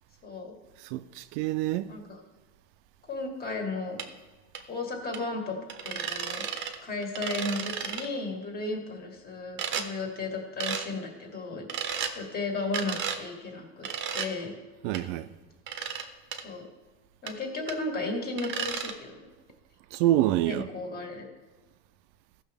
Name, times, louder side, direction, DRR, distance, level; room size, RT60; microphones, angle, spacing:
voice 1, 0.2-0.5 1.9-2.2 3.1-4.0 4.7-6.5 6.8-13.9 14.1-14.5 16.4-16.7 17.2-19.2 20.5-21.2, left 3 dB, 25° left, 1.8 m, -34 dB
voice 2, 0.8-1.9 14.8-15.3 19.9-20.7, right 14 dB, 70° right, 0.5 m, -27 dB
sound 1, 4.0-4.1 4.5-4.6 5.1-5.2 5.7-6.8 7.0-8.1 9.6-9.9 10.6-10.9 11.7-12.1 12.7-13.2 13.8-14.3 14.9-15.0 15.7-16.0 16.3-16.4 17.3-17.4 17.7-17.8 18.4-18.9, right 7 dB, 30° right, 0.8 m, -33 dB
14.5 x 6.3 x 3.5 m
cardioid pair, 155°, 36 cm